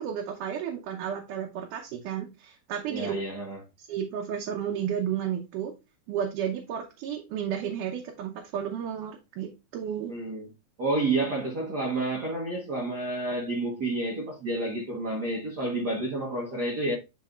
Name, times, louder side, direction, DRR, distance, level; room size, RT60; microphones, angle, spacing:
voice 1, 0.0-3.1 3.8-5.7 6.1-10.1, right 9 dB, 80° right, 2.4 m, -32 dB
voice 2, 2.9-3.6 10.1-10.5 10.8-16.9, right 2 dB, 65° right, 1.0 m, -30 dB
10.0 x 4.1 x 2.4 m
omnidirectional pair, 3.6 m